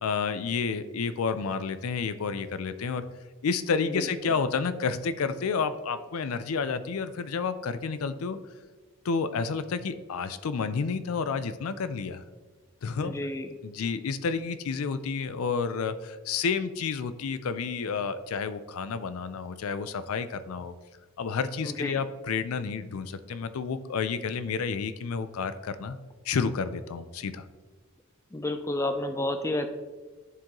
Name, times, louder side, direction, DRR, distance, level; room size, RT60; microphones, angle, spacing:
voice 1, 0.0-3.1 3.4-8.4 9.0-12.2 12.8-13.1 13.6-20.7 21.2-26.0 26.3-27.5, left 5 dB, 90° left, 12 dB, 0.4 m, -30 dB
voice 2, 3.8-4.3 13.0-13.5 21.6-22.0 28.3-29.7, left 1 dB, 15° left, 7 dB, 0.4 m, -31 dB
11.0 x 3.8 x 3.0 m, 1.3 s
head